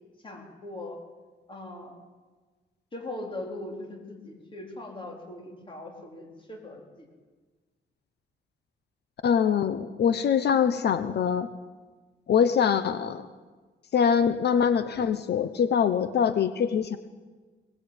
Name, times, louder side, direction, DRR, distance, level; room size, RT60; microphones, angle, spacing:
voice 1, 0.2-1.0 1.5-1.9 2.9-7.1, left 2 dB, 25° left, 1 dB, 4.1 m, -40 dB
voice 2, 9.2-11.5 12.3-13.2 13.9-17.0, left 7 dB, 60° left, 11 dB, 1.0 m, -23 dB
22.5 x 18.5 x 8.9 m, 1.4 s
wide cardioid pair, 165°, 19 cm